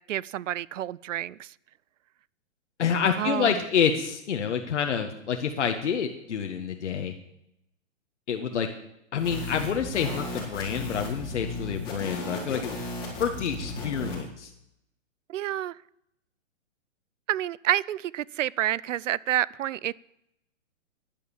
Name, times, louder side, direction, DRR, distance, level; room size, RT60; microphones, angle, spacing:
voice 1, 0.0-1.5 3.2-3.6 15.3-15.8 17.3-19.9, right 12 dB, 70° right, 0.6 m, -29 dB
voice 2, 2.8-7.1 8.3-8.7 9.1-12.8 13.2-14.5, left 7 dB, 60° left, 1.5 m, -28 dB
sound 1, 9.2-14.2, left 2 dB, 10° left, 4.2 m, -35 dB
11.5 x 11.0 x 7.2 m
hypercardioid pair, 175°, 39 cm